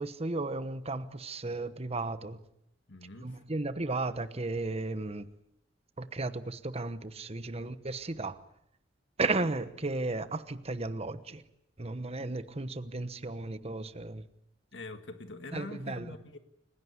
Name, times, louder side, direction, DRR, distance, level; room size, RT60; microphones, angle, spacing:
voice 1, 0.0-2.4 3.2-5.3 6.0-8.4 9.2-11.4 11.8-14.3 15.5-16.2, right 2 dB, 35° right, 1.1 m, -34 dB
voice 2, 2.9-3.4 14.7-16.4, left 2 dB, 70° left, 1.8 m, -44 dB
29.5 x 17.0 x 9.6 m
head